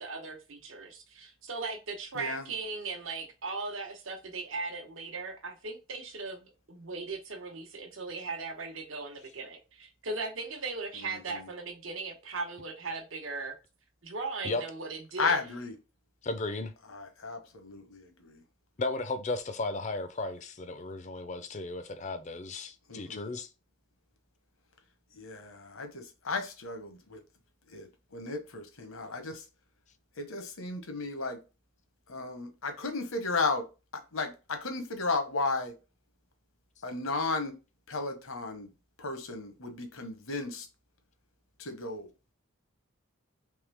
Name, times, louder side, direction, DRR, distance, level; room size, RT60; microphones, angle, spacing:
voice 1, 0.0-13.5 14.0-15.4, right 3 dB, 70° right, 0.9 m, -38 dB
voice 2, 15.2-15.7 16.9-18.4 22.9-23.3 25.2-27.2 27.7-27.9 28.1-29.4 30.2-31.4 32.1-33.6 34.1-35.7 36.8-37.5 37.9-38.7 39.0-40.7 41.6-42.1, left 3 dB, 75° left, 1.0 m, -34 dB
voice 3, 16.2-16.7 18.8-23.5, left 3 dB, 35° left, 0.5 m, -35 dB
3.6 x 3.2 x 3.4 m
head